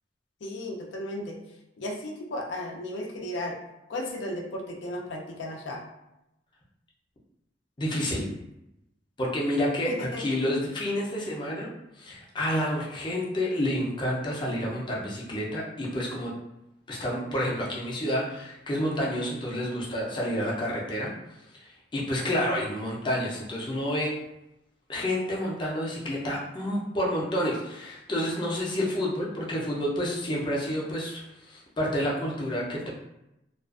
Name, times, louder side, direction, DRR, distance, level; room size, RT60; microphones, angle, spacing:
voice 1, 0.4-1.4 1.8-3.6 3.9-5.8 9.9-10.2, left 1 dB, 75° left, 0 dB, 0.4 m, -34 dB
voice 2, 7.8-8.3 9.2-11.7 12.0-16.3 16.9-21.1 21.6-24.1 24.9-32.9, equal, 25° left, -4 dB, 0.5 m, -29 dB
2.4 x 2.3 x 2.4 m, 0.89 s
head